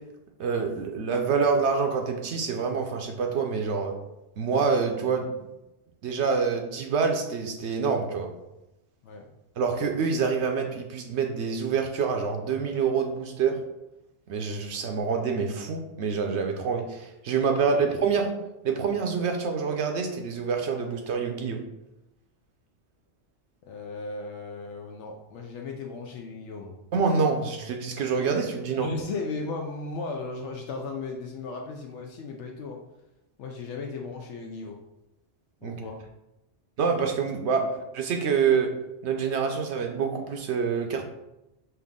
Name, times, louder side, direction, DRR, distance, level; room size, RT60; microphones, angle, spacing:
voice 1, 0.4-3.9 4.4-5.3 6.0-8.3 9.6-13.6 14.3-18.3 18.6-21.6 26.9-28.9 35.6-35.8 36.8-38.7 39.0-41.0, right 5 dB, 70° right, 4 dB, 0.8 m, -26 dB
voice 2, 23.6-26.8 28.8-32.8 33.4-34.8 35.6-36.0, left 3 dB, 75° left, 1 dB, 0.9 m, -36 dB
5.7 x 2.6 x 3.6 m, 0.93 s
omnidirectional pair, 1.2 m